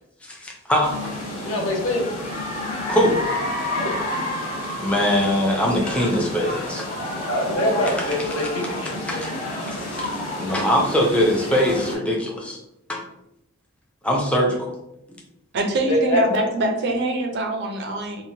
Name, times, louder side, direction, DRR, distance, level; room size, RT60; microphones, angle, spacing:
voice 1, 0.2-1.1 2.9-3.3 4.8-6.9 9.1-9.3 9.7-10.1 10.3-12.6 12.9-13.0 14.0-14.7, equal, 5° left, -1 dB, 0.4 m, -22 dB
sound 1, 0.8-12.0, left 1 dB, 40° left, 1.2 m, -30 dB
voice 2, 1.4-2.1 3.7-4.0 7.3-9.2 15.9-16.2, equal, 65° left, 0 dB, 0.7 m, -24 dB
voice 3, 15.5-18.2, right 1 dB, 55° right, 3 dB, 0.5 m, -24 dB
2.8 x 2.1 x 2.7 m, 0.85 s
head